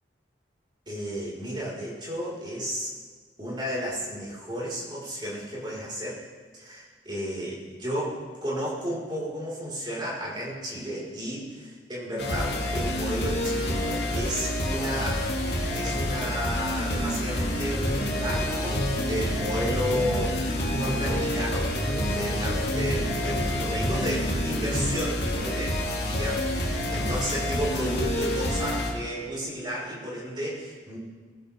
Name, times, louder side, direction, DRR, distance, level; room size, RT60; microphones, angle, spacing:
voice 1, 0.9-2.9 3.4-6.2 6.5-15.3 15.7-25.8 26.1-31.0, equal, 25° right, -6 dB, 5.3 m, -33 dB
sound 1, 12.2-28.9, left 1 dB, 55° left, 2.8 m, -28 dB
sound 2, 17.0-25.0, equal, 25° left, 6.3 m, -34 dB
23.0 x 14.5 x 3.8 m, 1.5 s
head